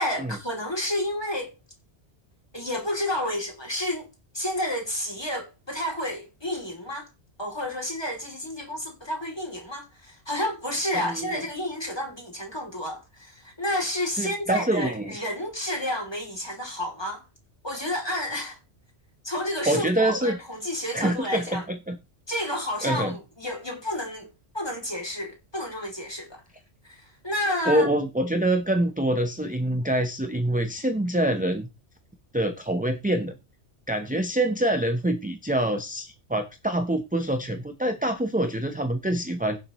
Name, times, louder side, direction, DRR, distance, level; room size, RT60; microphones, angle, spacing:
voice 1, 0.0-1.5 2.5-4.1 4.3-7.1 7.4-17.2 17.6-18.6 19.2-21.6 22.3-26.4 26.9-27.9, left 1 dB, 20° left, 3.1 m, -30 dB
voice 2, 11.0-11.4 14.2-15.1 19.7-20.4 20.9-22.0 22.8-23.1 27.7-31.7 32.3-33.4 33.9-39.6, right 1 dB, 10° right, 0.8 m, -25 dB
16.5 x 7.2 x 3.1 m
omnidirectional pair, 1.2 m